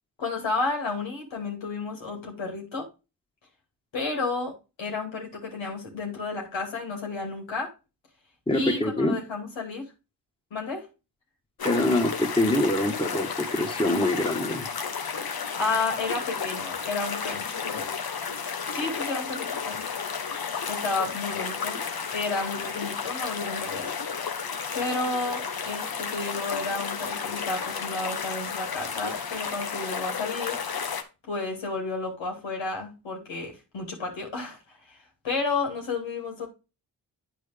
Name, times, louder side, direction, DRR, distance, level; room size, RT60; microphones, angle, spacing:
voice 1, 0.2-2.9 3.9-7.7 8.5-9.9 10.5-10.9 15.6-17.9 18.7-20.0 20.7-21.8 22.1-23.9 24.7-30.6 31.3-36.5, left 3 dB, 75° left, 2.7 m, -32 dB
voice 2, 8.5-9.1 11.6-14.7, left 1 dB, 10° left, 1.8 m, -25 dB
sound 1, 11.6-31.0, left 6 dB, 50° left, 1.2 m, -32 dB
9.1 x 4.7 x 3.5 m
supercardioid pair, 40°, 46 cm